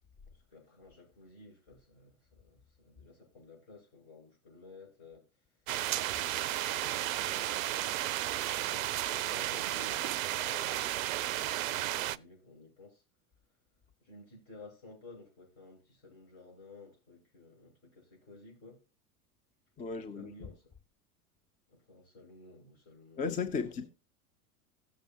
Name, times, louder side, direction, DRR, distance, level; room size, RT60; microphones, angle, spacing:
voice 1, 0.3-5.3 6.0-13.0 14.0-18.8 19.9-20.7 21.7-23.2 23.6-23.9, left 3 dB, 55° left, 6.0 m, -54 dB
sound 1, 5.7-12.2, right 14 dB, 60° right, 0.5 m, -33 dB
voice 2, 19.8-20.5 23.2-23.9, left 5 dB, 15° left, 0.6 m, -35 dB
16.5 x 6.8 x 2.8 m
figure-of-eight pair, 85°, 46 cm